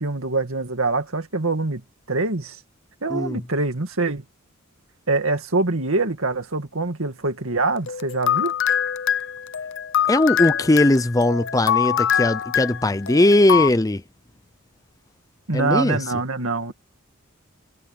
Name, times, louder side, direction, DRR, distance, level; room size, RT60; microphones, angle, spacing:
voice 1, 0.0-1.8 2.1-2.6 3.0-4.2 5.1-8.5 15.5-16.7, right 3 dB, 70° right, 2.2 m, -24 dB
sound 1, 7.9-13.7, left 9 dB, 60° left, 0.6 m, -23 dB
voice 2, 10.1-14.0 15.5-16.0, left 1 dB, 15° left, 0.6 m, -19 dB
head